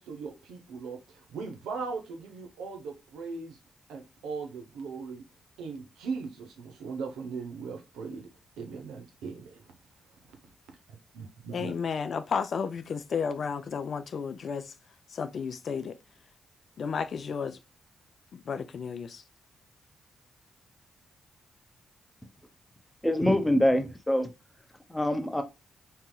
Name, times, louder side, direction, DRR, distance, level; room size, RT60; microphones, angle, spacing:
voice 1, 0.0-3.6 3.9-5.2 5.6-8.3 8.6-9.7 10.3-10.4 10.9-11.7, right 5 dB, 80° right, 0.6 m, -39 dB
voice 2, 11.5-14.7 15.1-16.0 16.8-17.6 18.3-19.2, left 6 dB, 60° left, 0.3 m, -32 dB
voice 3, 23.0-24.3 24.9-25.4, left 1 dB, 10° left, 0.8 m, -24 dB
3.6 x 2.8 x 2.2 m
hypercardioid pair, 40°, 0 cm